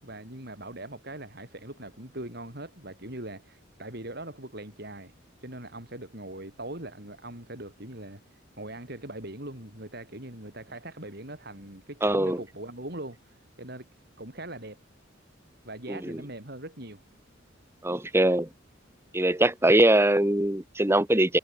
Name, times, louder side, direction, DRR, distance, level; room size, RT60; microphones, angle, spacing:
voice 1, 0.0-5.1 5.4-13.9 14.2-14.8 15.6-17.0, right 1 dB, 55° right, 7.4 m, -41 dB
voice 2, 12.0-12.4 15.9-16.2 17.8-18.5 19.1-21.4, right 1 dB, 15° right, 1.2 m, -22 dB
head